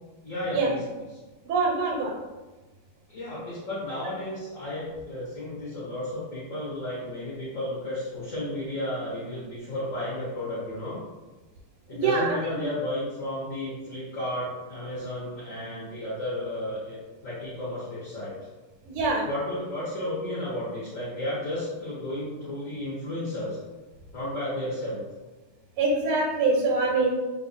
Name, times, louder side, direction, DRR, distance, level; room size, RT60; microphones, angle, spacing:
voice 1, 0.2-0.8 3.1-11.0 11.9-18.4 19.1-23.6 24.1-25.0, left 1 dB, 50° left, -8 dB, 1.0 m, -33 dB
voice 2, 1.4-2.1 11.9-12.6 18.8-19.3 25.8-27.1, right 3 dB, 85° right, -1 dB, 1.6 m, -24 dB
3.4 x 2.4 x 3.9 m, 1.2 s
omnidirectional pair, 2.4 m